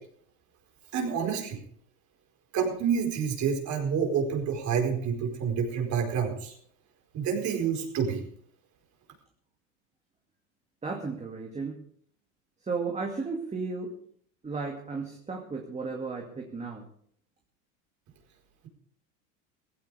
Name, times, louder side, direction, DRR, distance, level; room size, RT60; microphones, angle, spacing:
voice 1, 0.9-1.6 2.5-6.5 7.1-8.2, right 6 dB, 45° right, 2 dB, 4.7 m, -28 dB
voice 2, 10.8-11.8 12.6-13.9 14.4-16.9, right 4 dB, 15° right, 1 dB, 2.2 m, -34 dB
17.5 x 15.5 x 3.5 m, 0.62 s
supercardioid pair, 110°, 41 cm